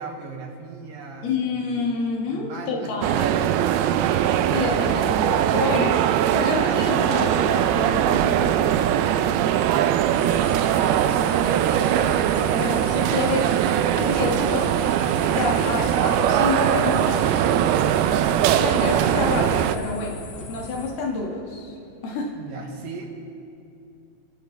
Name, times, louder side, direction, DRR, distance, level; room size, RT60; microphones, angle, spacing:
voice 1, 0.0-1.8 2.3-5.6 22.3-23.0, right 4 dB, 60° right, -1 dB, 2.8 m, -40 dB
voice 2, 1.2-3.3 4.5-9.0 12.5-13.6 14.0-14.8 15.3-17.3 18.6-21.8 22.0-22.3, left 3 dB, 65° left, 0 dB, 3.7 m, -28 dB
sound 1, 3.0-19.8, right 10 dB, 85° right, 2.2 m, -21 dB
sound 2, 10.2-20.9, left 3 dB, 90° left, 3.9 m, -38 dB
29.5 x 12.5 x 3.4 m, 2.6 s
omnidirectional pair, 5.1 m